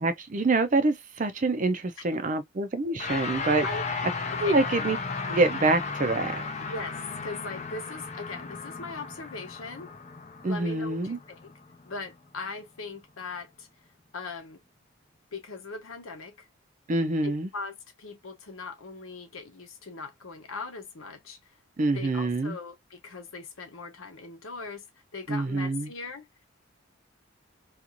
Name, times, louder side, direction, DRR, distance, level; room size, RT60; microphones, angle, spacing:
voice 1, 0.0-3.7 4.4-5.0 5.3-6.4 10.4-11.2 16.9-17.5 21.8-22.5 25.3-25.9, right 2 dB, 35° right, 0.5 m, -26 dB
sound 1, 3.0-12.5, left 4 dB, 35° left, 0.5 m, -35 dB
voice 2, 4.3-4.6 6.7-9.9 10.4-11.5 11.8-13.7 14.1-14.6 15.3-16.5 17.2-21.4 21.9-24.9 25.1-26.3, left 3 dB, 80° left, 0.9 m, -40 dB
2.5 x 2.4 x 2.8 m
head